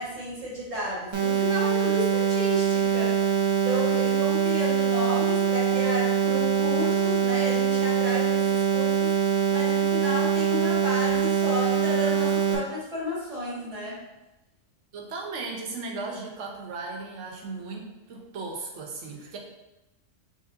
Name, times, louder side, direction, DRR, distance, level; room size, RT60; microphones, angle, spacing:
voice 1, 0.0-3.3 3.6-9.1 9.5-14.0, equal, 30° right, -7 dB, 1.4 m, -32 dB
sound 1, 1.1-12.5, right 7 dB, 50° right, 0.3 m, -23 dB
voice 2, 14.9-19.4, right 3 dB, 75° right, 0 dB, 1.1 m, -36 dB
5.3 x 3.0 x 2.5 m, 0.98 s
omnidirectional pair, 1.3 m